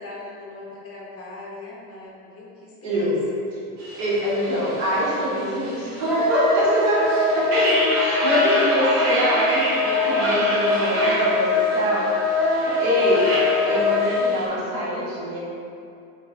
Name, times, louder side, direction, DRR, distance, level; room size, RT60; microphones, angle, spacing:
voice 1, 0.0-3.1 12.8-13.4, left 2 dB, 30° left, -4 dB, 0.7 m, -39 dB
voice 2, 2.8-3.2 3.5-3.6 4.0-13.2 13.6-15.4, equal, 55° right, -6 dB, 1.2 m, -24 dB
sound 1, 3.8-14.5, right 1 dB, 85° right, 0.9 m, -29 dB
Wind instrument woodwind instrument, 6.1-14.3, left 3 dB, ahead, 0.4 m, -23 dB
4.5 x 2.2 x 2.5 m, 2.6 s
hypercardioid pair, 75°, 45 cm